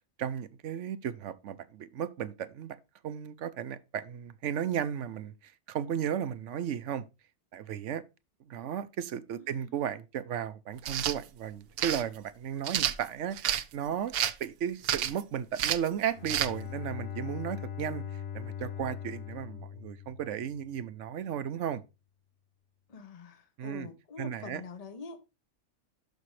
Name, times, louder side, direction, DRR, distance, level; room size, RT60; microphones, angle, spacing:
voice 1, 0.2-2.8 3.0-7.0 7.5-8.0 8.4-14.1 14.4-21.8 23.6-23.9 24.2-24.6, right 9 dB, 75° right, 1.0 m, -35 dB
voice 2, 9.4-9.7 22.9-25.2, left 4 dB, 35° left, 1.0 m, -45 dB
sound 1, 10.8-11.2 11.8-12.0 12.6-13.6 14.1-14.4 14.8-15.2 15.6-15.9 16.3-16.5, right 10 dB, 60° right, 0.7 m, -29 dB
Bowed string instrument, 16.1-20.8, left 9 dB, 70° left, 1.4 m, -40 dB
12.0 x 5.4 x 3.2 m
omnidirectional pair, 1.3 m